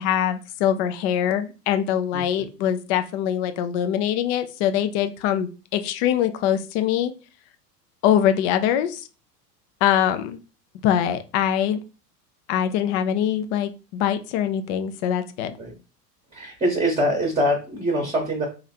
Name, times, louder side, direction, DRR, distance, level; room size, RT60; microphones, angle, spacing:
voice 1, 0.0-7.1 8.0-9.1 9.8-10.4 10.8-11.8 12.5-15.5, left 10 dB, 45° left, 9 dB, 0.6 m, -23 dB
voice 2, 2.1-2.4 15.6-15.7 16.3-18.5, equal, 10° right, 0 dB, 1.0 m, -24 dB
3.0 x 2.6 x 4.2 m, 0.32 s
hypercardioid pair, 90°, 48 cm